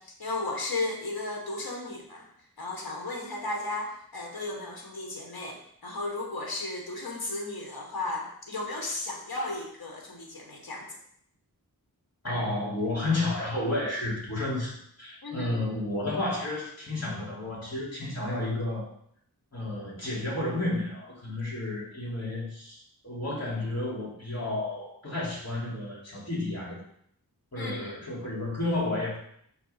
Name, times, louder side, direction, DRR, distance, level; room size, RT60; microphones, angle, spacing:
voice 1, 0.0-2.3 2.6-10.9 15.2-15.6 27.5-28.0, left 2 dB, 75° left, 0 dB, 1.3 m, -35 dB
voice 2, 12.2-18.9 19.5-26.8 27.5-29.2, left 2 dB, 45° left, -5 dB, 2.9 m, -31 dB
6.1 x 3.3 x 5.6 m, 0.69 s
wide cardioid pair, 60°, 37 cm